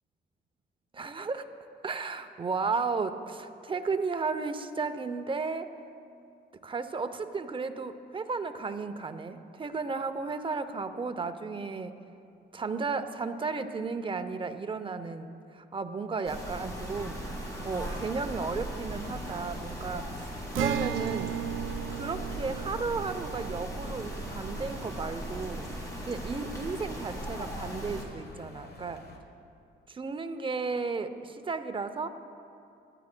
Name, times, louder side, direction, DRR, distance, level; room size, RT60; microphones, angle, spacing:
voice 1, 0.9-1.5 1.8-5.7 6.6-11.9 12.5-17.2 17.6-20.3 20.5-21.4 21.9-25.7 26.1-29.0 29.9-32.1, right 4 dB, 25° right, 9 dB, 0.6 m, -34 dB
sound 1, 16.3-28.0, equal, 15° left, 2.2 m, -38 dB
Acoustic guitar, 20.5-26.0, right 11 dB, 80° right, 0.4 m, -36 dB
sound 2, 23.5-29.2, left 2 dB, 55° left, 1.3 m, -53 dB
18.5 x 11.0 x 2.2 m, 2.5 s
cardioid pair, 90°, 20 cm